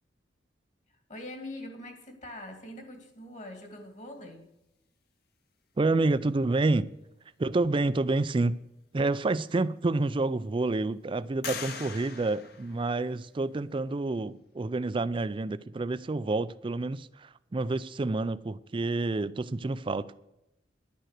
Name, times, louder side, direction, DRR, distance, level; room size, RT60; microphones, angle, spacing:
voice 1, 1.1-4.5, left 1 dB, 40° left, 2.3 m, -43 dB
voice 2, 5.8-6.9 7.4-8.6 8.9-20.1, right 2 dB, 30° right, 0.4 m, -28 dB
sound 1, 9.2-9.3 9.8-10.5 11.4-13.4, left 5 dB, 60° left, 1.5 m, -41 dB
11.0 x 9.1 x 6.5 m
head